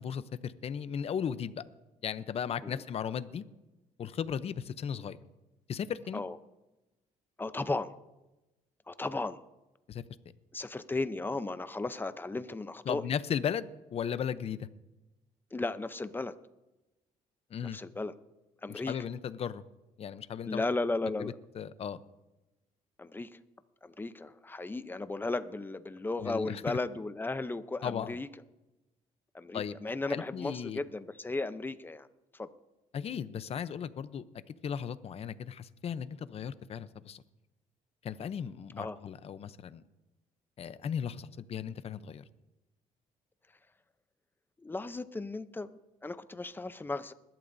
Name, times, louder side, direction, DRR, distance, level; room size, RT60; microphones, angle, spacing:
voice 1, 0.0-1.6 2.0-3.4 4.0-5.2 5.7-6.2 9.9-10.0 12.9-14.7 17.5-17.8 18.7-19.6 20.0-20.6 21.2-22.0 26.2-26.8 27.8-28.2 29.5-30.8 32.9-37.2 38.0-39.8 40.6-42.2, left 8 dB, 50° left, 14 dB, 0.7 m, -36 dB
voice 2, 7.4-7.9 8.9-9.4 10.5-13.0 15.5-16.3 17.7-18.1 18.6-19.0 20.5-21.3 23.0-23.4 23.8-28.3 29.3-32.1 32.3-32.5 38.8-39.0 44.6-47.1, left 3 dB, 15° left, 12 dB, 0.7 m, -35 dB
21.5 x 12.0 x 2.7 m, 1.0 s
cardioid pair, 100°, 14 cm